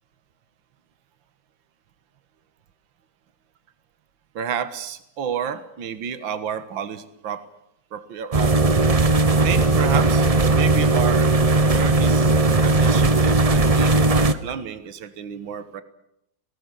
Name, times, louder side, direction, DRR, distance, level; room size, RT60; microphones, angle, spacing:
voice 1, 4.4-7.4 7.9-8.6 9.4-11.3 11.7-12.3 12.6-15.8, right 8 dB, 70° right, 12 dB, 2.1 m, -30 dB
sound 1, 8.3-14.3, right 3 dB, 35° right, 0.6 m, -18 dB
20.0 x 18.5 x 9.9 m, 0.77 s
omnidirectional pair, 2.2 m